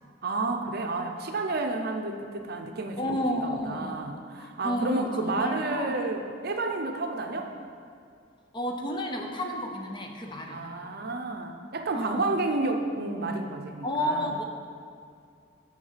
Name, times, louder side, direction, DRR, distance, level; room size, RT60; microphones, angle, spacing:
voice 1, 0.2-7.5 10.5-14.4, right 2 dB, 55° right, 4 dB, 0.6 m, -31 dB
voice 2, 3.0-4.1 4.4-6.0 8.5-10.7 11.9-12.2 13.8-14.4, left 1 dB, 25° left, 2 dB, 0.7 m, -31 dB
6.5 x 6.4 x 5.6 m, 2.3 s
head